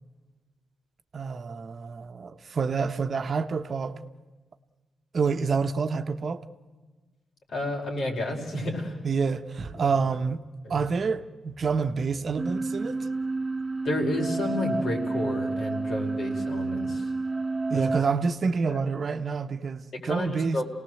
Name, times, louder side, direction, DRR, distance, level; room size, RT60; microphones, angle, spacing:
voice 1, 1.1-4.0 5.1-6.5 9.0-10.4 10.7-13.1 17.7-20.6, right 5 dB, 55° right, 1.0 m, -28 dB
voice 2, 7.5-9.0 9.6-10.0 10.6-10.8 13.8-17.1 17.7-18.0 18.7-18.8 20.0-20.6, left 1 dB, 70° left, 4.8 m, -31 dB
sound 1, 12.4-18.0, right 3 dB, 20° right, 1.4 m, -30 dB
28.0 x 18.5 x 7.8 m
cardioid pair, 95°, 0 cm